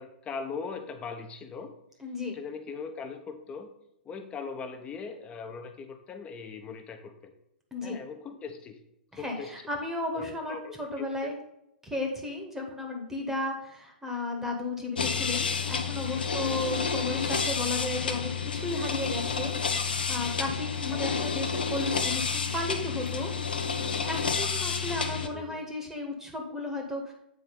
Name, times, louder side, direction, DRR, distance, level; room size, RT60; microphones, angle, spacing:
voice 1, 0.0-1.7 2.3-3.7 4.0-7.3 7.8-8.8 9.2-9.5 10.1-11.4 17.4-17.5 20.9-21.0 25.1-25.6, left 5 dB, 20° left, 6 dB, 1.0 m, -40 dB
voice 2, 2.0-2.4 7.7-8.0 9.1-11.4 11.8-23.3 24.0-27.1, left 2 dB, 5° right, 2 dB, 1.3 m, -34 dB
sound 1, 15.0-25.3, left 5 dB, 70° left, 0.9 m, -30 dB
7.9 x 4.4 x 5.2 m, 0.83 s
figure-of-eight pair, 110°, 5 cm